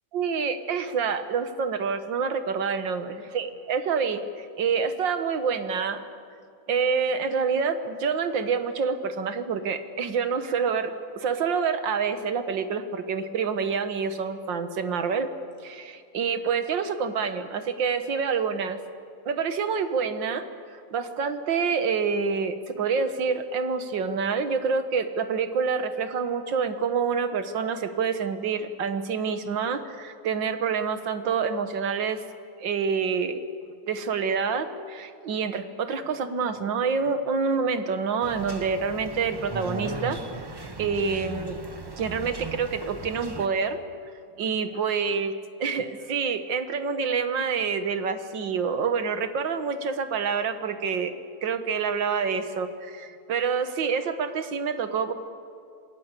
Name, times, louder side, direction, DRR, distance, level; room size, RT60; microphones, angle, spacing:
voice 1, 0.1-3.1 3.3-6.0 6.7-15.3 15.6-18.8 19.3-20.4 20.7-32.2 32.6-33.4 33.9-40.5 40.8-41.6 42.0-43.8 44.4-51.1 51.4-55.1, right 5 dB, 80° right, 9 dB, 2.1 m, -27 dB
sound 1, 38.2-43.5, right 2 dB, 20° right, 0.8 m, -37 dB
28.0 x 20.5 x 8.3 m, 2.4 s
omnidirectional pair, 2.0 m